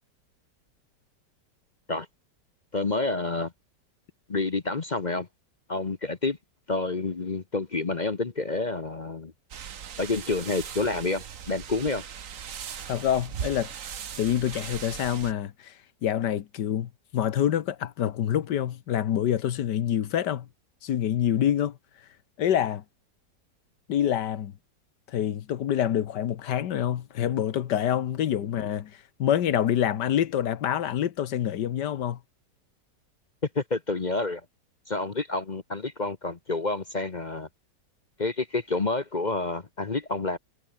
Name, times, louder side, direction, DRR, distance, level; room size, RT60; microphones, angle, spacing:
voice 1, 2.7-3.5 4.3-5.3 5.7-6.4 6.7-9.3 10.0-12.0 28.4-28.5 33.5-34.4 34.9-37.5 38.2-40.4, left 3 dB, 35° left, 0.9 m, -29 dB
sound 1, 9.5-15.3, right 8 dB, 50° right, 1.4 m, -39 dB
voice 2, 12.9-13.7 14.2-15.7 16.0-20.5 20.8-21.8 22.4-22.8 23.9-24.5 25.1-28.9 29.2-32.2, left 10 dB, 70° left, 1.6 m, -26 dB
omnidirectional pair, 1.9 m